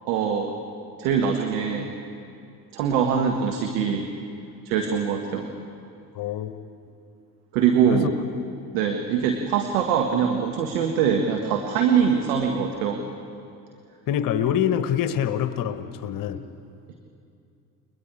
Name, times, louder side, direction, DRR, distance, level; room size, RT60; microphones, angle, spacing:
voice 1, 0.1-0.5 1.0-1.9 2.7-4.1 4.6-5.5 7.5-8.2 8.7-13.0, right 7 dB, 60° right, 3 dB, 1.7 m, -23 dB
voice 2, 6.1-6.5 7.9-8.1 14.1-16.4, left 9 dB, 40° left, 12 dB, 1.2 m, -25 dB
29.5 x 23.0 x 4.8 m, 2.6 s
figure-of-eight pair, 55°, 49 cm